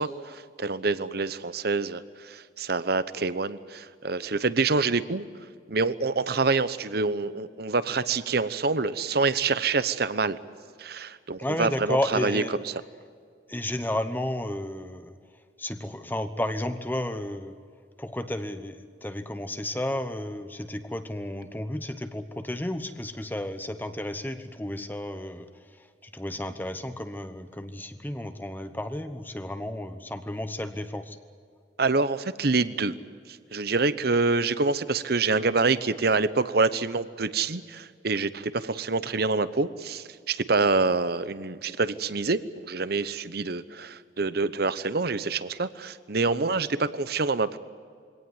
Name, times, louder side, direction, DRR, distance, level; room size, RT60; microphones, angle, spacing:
voice 1, 0.0-5.3 5.7-10.4 10.8-12.4 31.8-32.9 33.3-47.6, right 3 dB, 60° right, 15 dB, 0.9 m, -26 dB
voice 2, 11.4-12.5 13.5-15.2 15.6-17.6 18.0-25.5 25.8-31.2, left 1 dB, 10° left, 9 dB, 1.0 m, -32 dB
23.5 x 18.0 x 9.6 m, 2.2 s
head